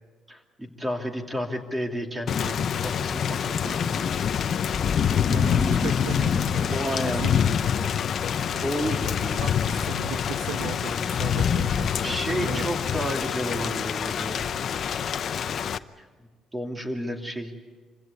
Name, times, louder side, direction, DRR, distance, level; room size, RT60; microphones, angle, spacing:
voice 1, 0.3-4.2 6.1-7.3 8.6-9.6 12.0-14.5 15.4-15.6 16.0-17.5, equal, 15° right, 3 dB, 2.8 m, -32 dB
Thunder / Rain, 2.3-15.8, left 8 dB, 50° left, 0.7 m, -26 dB
sound 1, 5.0-8.0, left 1 dB, 10° left, 1.6 m, -35 dB
voice 2, 5.3-8.1 8.5-8.8 9.3-12.7, right 8 dB, 85° right, 10 dB, 1.1 m, -37 dB
26.5 x 16.5 x 9.6 m, 1.4 s
cardioid pair, 120°, 0 cm